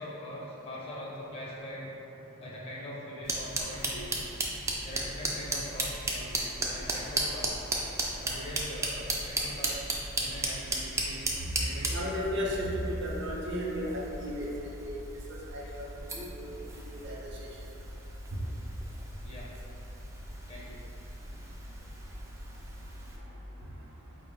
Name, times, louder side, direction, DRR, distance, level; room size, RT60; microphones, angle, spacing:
voice 1, 0.0-1.9 2.4-4.3 4.8-7.7 8.2-12.1 19.2-19.5 20.5-20.8, equal, 30° left, -6 dB, 0.6 m, -42 dB
sound 1, 3.2-23.2, right 2 dB, 15° right, 0.3 m, -36 dB
voice 2, 11.8-14.5 14.8-15.0 15.3-16.5 16.8-17.5 18.3-18.4, equal, 60° right, -4 dB, 0.6 m, -34 dB
4.5 x 2.0 x 3.6 m, 2.9 s
head